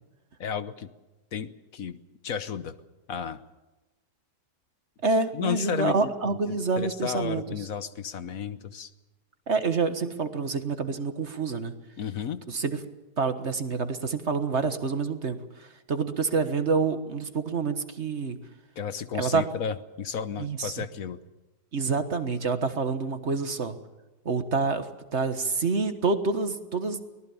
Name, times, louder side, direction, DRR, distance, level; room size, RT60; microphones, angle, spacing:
voice 1, 0.4-0.9 1.3-2.0 2.2-2.8 3.1-3.4 5.3-8.9 12.0-12.4 18.8-21.2, left 7 dB, 65° left, 12 dB, 1.4 m, -33 dB
voice 2, 5.0-7.4 9.5-11.7 12.5-12.8 13.2-18.4 19.1-19.4 20.4-20.8 21.7-23.8 24.2-24.9 25.1-27.0, right 4 dB, 45° right, 9 dB, 1.7 m, -27 dB
23.5 x 18.5 x 7.2 m, 1.1 s
omnidirectional pair, 1.6 m